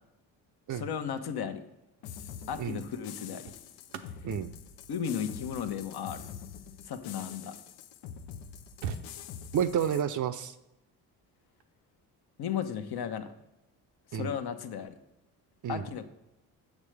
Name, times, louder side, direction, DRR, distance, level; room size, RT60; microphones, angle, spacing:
voice 1, 0.7-1.6 2.5-3.5 4.9-6.2 6.8-7.5 12.4-13.3 14.1-15.0 15.7-16.0, left 8 dB, 55° left, 8 dB, 1.0 m, -35 dB
sound 1, 1.8-2.1 3.0-7.6 8.2-8.3 8.4-9.7 11.4-11.6, right 6 dB, 80° right, 0.7 m, -45 dB
sound 2, 2.0-10.0, left 8 dB, 80° left, 0.7 m, -45 dB
voice 2, 9.5-10.5 14.1-14.3 15.6-15.8, right 8 dB, 40° right, 12 dB, 0.5 m, -30 dB
7.2 x 6.4 x 3.3 m, 0.92 s
hypercardioid pair, 55°, 47 cm